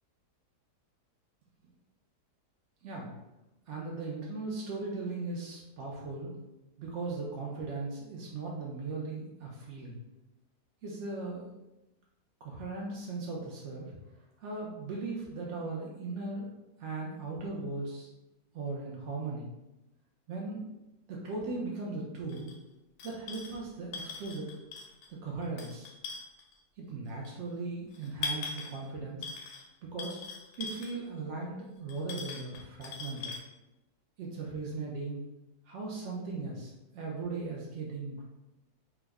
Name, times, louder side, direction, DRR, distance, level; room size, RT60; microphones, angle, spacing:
voice 1, 2.8-3.2 3.7-6.4 6.8-10.0 10.8-11.5 12.4-14.0 14.4-16.5 16.8-18.1 18.5-19.5 20.3-20.7 21.1-22.6 23.0-24.5 25.1-25.9 26.8-29.3 29.8-30.2 30.6-33.3 34.2-35.2 35.7-38.2, right 3 dB, 80° right, -3 dB, 0.6 m, -38 dB
sound 1, 22.3-22.5 23.0-23.6 23.9-25.1 25.4-26.5 27.2-27.3 27.9-28.8 29.2-29.7 30.0-31.0 31.9-33.4, left 4 dB, 75° left, 1.0 m, -40 dB
3.4 x 2.0 x 3.4 m, 0.99 s
omnidirectional pair, 1.8 m